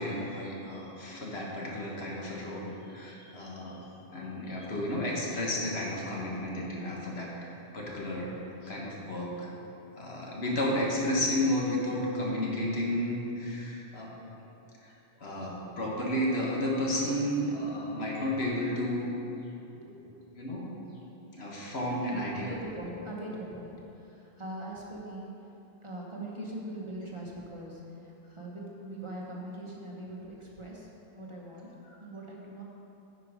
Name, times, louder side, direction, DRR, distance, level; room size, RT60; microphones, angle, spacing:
voice 1, 0.0-3.8 4.1-7.3 7.7-8.3 8.6-9.5 9.9-14.1 14.8-14.9 15.2-19.1 20.3-20.7 21.4-22.5 31.8-31.9, left 1 dB, 75° left, -3 dB, 1.6 m, -32 dB
voice 2, 22.0-25.3 25.8-30.9 31.1-31.7 32.0-32.6, right 1 dB, 30° right, -4 dB, 1.0 m, -41 dB
10.0 x 5.1 x 4.9 m, 3.0 s
omnidirectional pair, 1.1 m